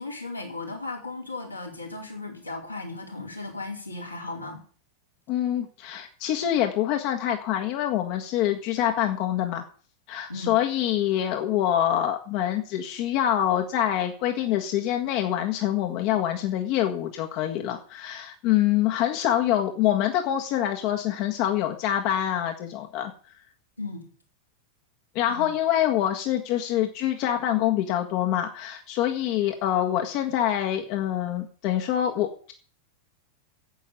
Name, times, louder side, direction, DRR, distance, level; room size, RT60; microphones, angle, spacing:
voice 1, 0.0-4.6 10.3-10.5 23.8-24.1 25.3-25.5, left 2 dB, 90° left, -2 dB, 4.4 m, -36 dB
voice 2, 5.3-9.6 10.1-23.1 25.1-32.5, left 11 dB, 45° left, 3 dB, 1.6 m, -25 dB
10.5 x 8.2 x 8.5 m, 0.42 s
figure-of-eight pair, 90°, 0 cm